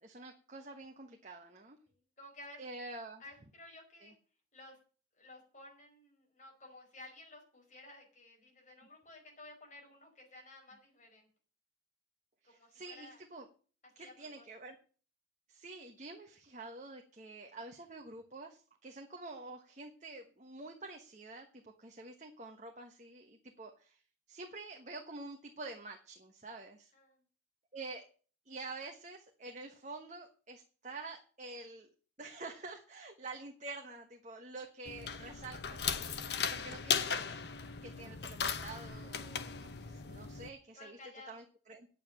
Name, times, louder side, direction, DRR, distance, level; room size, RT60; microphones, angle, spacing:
voice 1, 0.0-1.8 2.6-3.2 4.0-4.1 12.4-13.4 14.0-14.7 15.5-24.0 24.3-26.9 27.7-28.0 28.4-31.9 32.2-36.0 36.5-37.4 37.8-41.0 41.3-41.9, right 3 dB, 40° right, 3 dB, 1.2 m, -48 dB
voice 2, 1.9-2.7 3.2-4.2 4.5-4.8 5.1-11.3 12.4-13.2 14.0-14.5 26.9-27.2 40.7-41.4, left 2 dB, 40° left, 0 dB, 5.2 m, -54 dB
sound 1, 34.9-40.5, left 7 dB, 60° left, 0.8 m, -37 dB
9.4 x 7.4 x 8.8 m, 0.40 s
head